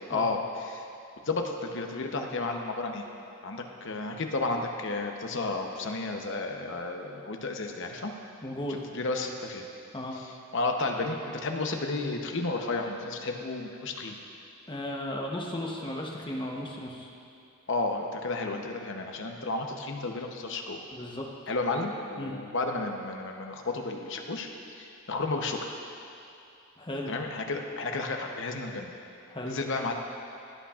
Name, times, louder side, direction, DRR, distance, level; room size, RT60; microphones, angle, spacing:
voice 1, 0.1-0.8 1.2-3.0 3.4-8.1 8.9-9.6 10.1-14.2 17.7-20.8 21.5-24.5 24.8-25.7 27.1-28.9 29.5-29.9, left 3 dB, 55° left, 3 dB, 0.8 m, -32 dB
voice 2, 8.4-8.8 9.9-10.2 14.7-17.1 20.9-21.3 22.2-22.3 26.8-27.1 29.3-29.6, left 1 dB, 20° left, -1 dB, 0.9 m, -35 dB
17.0 x 8.6 x 2.4 m, 2.7 s
head